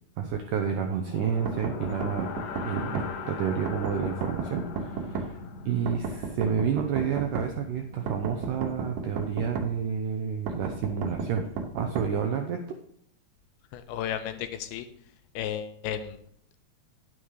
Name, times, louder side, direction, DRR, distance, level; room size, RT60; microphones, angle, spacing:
voice 1, 0.2-2.3 2.6-5.3 5.7-11.5 11.7-12.6, right 7 dB, 90° right, 4 dB, 1.8 m, -30 dB
sound 1, 1.0-9.0, left 5 dB, 65° left, 2.2 m, -41 dB
sound 2, 1.5-3.1 3.7-5.3 5.9-7.5 8.1-9.7 10.5-12.1, right 4 dB, 70° right, 2.3 m, -33 dB
voice 2, 13.7-14.9 15.4-16.2, left 9 dB, 85° left, 9 dB, 2.6 m, -33 dB
10.0 x 9.1 x 3.2 m, 0.67 s
omnidirectional pair, 4.6 m